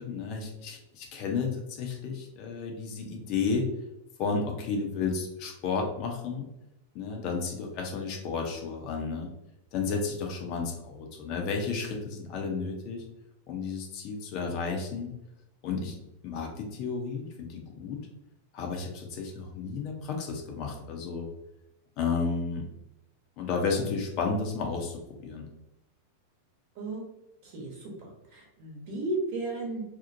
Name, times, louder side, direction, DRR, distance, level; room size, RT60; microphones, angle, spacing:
voice 1, 0.0-3.7 4.2-6.5 6.9-9.3 9.7-13.0 13.5-15.1 15.6-15.9 16.2-18.0 18.5-21.3 22.0-22.7 23.4-25.5, left 4 dB, 40° left, 1 dB, 0.5 m, -32 dB
voice 2, 27.4-29.8, right 2 dB, 50° right, -2 dB, 1.0 m, -34 dB
2.9 x 2.0 x 2.6 m, 0.88 s
figure-of-eight pair, 90°, 0 cm